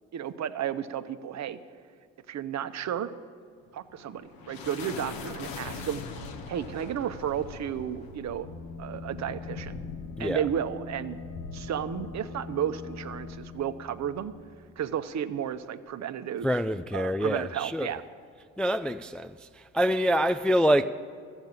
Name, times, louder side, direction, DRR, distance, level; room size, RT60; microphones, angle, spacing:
voice 1, 0.1-1.6 2.3-3.1 3.7-6.0 6.5-8.5 8.8-9.8 10.2-11.2 11.5-14.3 14.8-16.5 16.9-18.0, right 9 dB, 50° right, 0.8 m, -33 dB
sound 1, 3.7-14.4, left 4 dB, 70° left, 1.2 m, -43 dB
sound 2, 8.4-15.0, left 5 dB, 45° left, 2.2 m, -43 dB
voice 2, 10.2-10.5 16.4-18.0 18.6-20.9, equal, 5° left, 0.3 m, -26 dB
13.0 x 8.1 x 8.8 m
hypercardioid pair, 55°, 37 cm